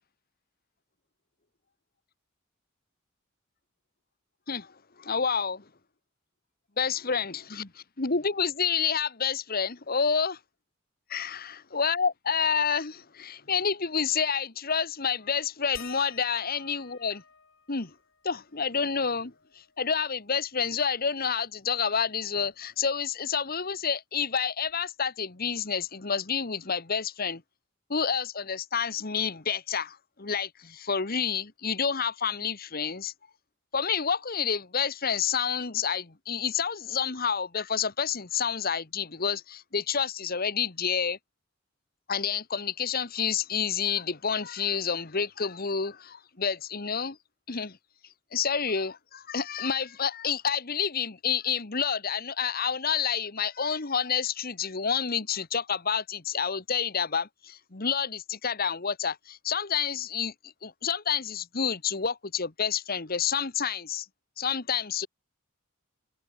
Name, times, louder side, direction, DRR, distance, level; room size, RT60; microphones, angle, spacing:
voice 1, 5.0-5.6 6.8-10.4 11.1-17.2 17.7-17.9 18.2-19.3 19.8-27.4 27.9-33.1 33.7-41.2 42.1-47.2 47.5-47.8 48.3-60.3 60.6-64.0 64.4-65.1, left 6 dB, 45° left, 1.5 m, -29 dB
sound 1, 15.7-20.9 21.2-21.3 21.7-23.4 24.7-24.8 25.5-25.6, left 7 dB, 70° left, 6.7 m, -54 dB
head